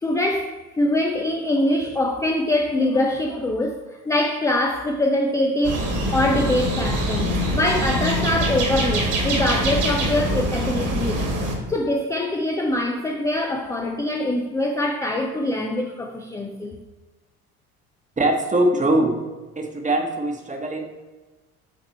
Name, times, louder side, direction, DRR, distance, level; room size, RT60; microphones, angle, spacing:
voice 1, 0.0-5.8 6.1-11.2 11.7-16.8, left 1 dB, 10° left, 0.4 m, -23 dB
sound 1, 5.6-11.6, right 1 dB, 45° right, 1.7 m, -24 dB
voice 2, 18.2-19.2 19.5-20.9, right 1 dB, 15° right, 1.1 m, -21 dB
7.3 x 3.5 x 4.2 m
figure-of-eight pair, 55°, 44 cm